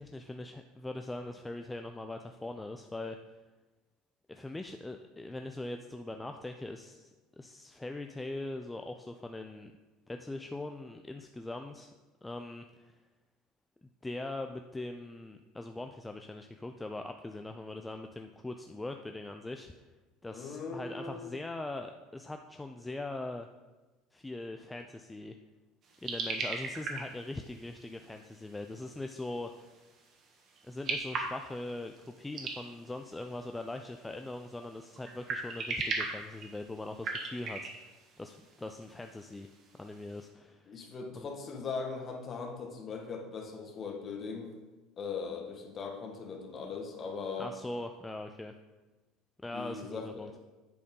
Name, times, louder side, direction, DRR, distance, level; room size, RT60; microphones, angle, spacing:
voice 1, 0.0-3.2 4.3-9.7 10.1-11.9 12.2-13.0 14.0-19.7 20.2-23.5 24.1-25.4 26.0-29.8 30.6-37.9 38.2-39.5 39.7-40.7 41.2-41.3 47.4-48.5 49.4-50.3, left 2 dB, 10° left, 5 dB, 0.4 m, -41 dB
voice 2, 20.3-21.3 40.7-44.5 45.0-47.5 49.5-50.4, left 5 dB, 40° left, 2 dB, 1.4 m, -39 dB
sound 1, 25.8-40.3, right 3 dB, 45° right, 1.5 m, -41 dB
8.4 x 4.3 x 5.3 m, 1.2 s
supercardioid pair, 100°, 0 cm